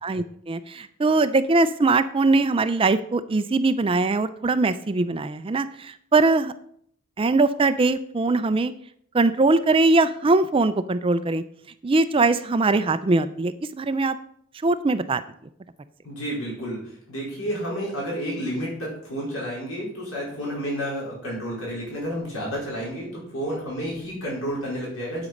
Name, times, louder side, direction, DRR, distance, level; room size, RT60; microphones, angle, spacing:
voice 1, 0.0-6.5 7.2-8.7 9.1-11.4 11.8-14.2 14.6-15.2, right 3 dB, 25° right, 13 dB, 0.4 m, -21 dB
voice 2, 16.0-25.3, equal, 90° left, -5 dB, 4.8 m, -30 dB
8.4 x 7.9 x 5.3 m, 0.65 s
head